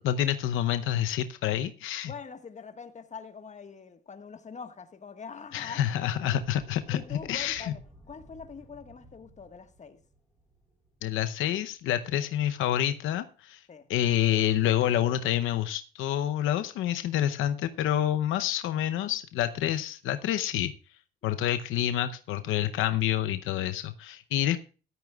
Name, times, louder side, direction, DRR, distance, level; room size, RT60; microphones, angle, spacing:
voice 1, 0.0-2.1 5.5-7.7 11.0-13.6 13.9-20.7 21.2-24.6, left 11 dB, 90° left, 0.8 m, -28 dB
voice 2, 2.0-6.2 6.9-7.8 8.1-10.0 13.7-13.9 21.2-21.5 24.4-24.5, left 5 dB, 35° left, 1.6 m, -44 dB
sound 1, 6.1-12.3, right 1 dB, 5° right, 5.1 m, -55 dB
15.0 x 12.5 x 2.4 m
cardioid pair, 90°, 20 cm